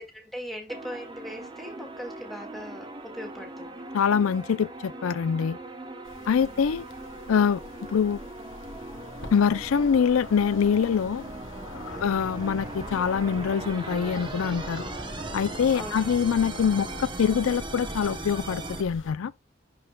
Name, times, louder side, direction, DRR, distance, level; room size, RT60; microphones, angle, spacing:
voice 1, 0.0-2.9 3.1-3.8 6.2-6.6 11.9-12.2 15.7-16.1, equal, ahead, 1.8 m, -40 dB
sound 1, 0.7-18.8, right 2 dB, 25° right, 0.8 m, -39 dB
voice 2, 3.9-5.6 6.3-6.8 7.3-7.6 7.9-8.2 9.3-11.3 12.0-14.9 15.3-19.3, left 7 dB, 90° left, 0.4 m, -24 dB
sound 2, 6.0-19.1, left 3 dB, 70° left, 1.2 m, -44 dB
Animal, 7.2-15.8, left 1 dB, 20° left, 1.1 m, -48 dB
11.5 x 4.5 x 2.3 m
head